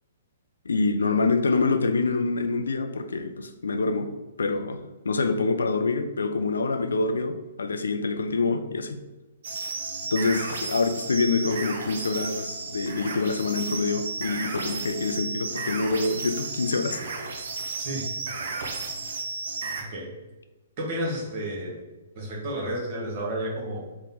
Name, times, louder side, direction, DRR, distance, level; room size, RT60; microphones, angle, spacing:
voice 1, 0.6-4.1 4.4-4.8 5.0-9.0 10.1-17.0, left 3 dB, 70° left, 8 dB, 0.3 m, -26 dB
sound 1, 9.4-19.8, right 4 dB, 55° right, 0.5 m, -33 dB
voice 2, 17.8-18.1 19.8-20.1 20.8-21.8 22.1-23.8, right 1 dB, 40° right, -2 dB, 1.1 m, -31 dB
3.5 x 2.1 x 3.9 m, 1.1 s
figure-of-eight pair, 120°, 0 cm